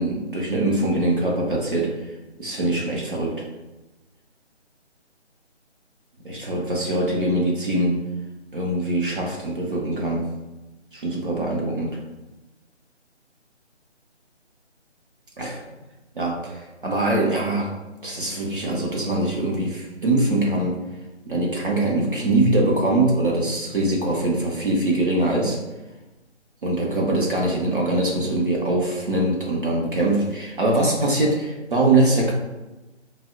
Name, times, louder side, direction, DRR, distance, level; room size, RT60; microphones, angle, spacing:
voice 1, 0.0-2.1 2.4-3.4 6.3-8.0 8.5-10.3 10.9-12.0 15.4-15.6 16.2-17.7 18.0-20.8 21.3-25.6 26.6-32.3, right 2 dB, 50° right, -3 dB, 0.6 m, -23 dB
2.7 x 2.0 x 3.5 m, 1.1 s
figure-of-eight pair, 165°, 35 cm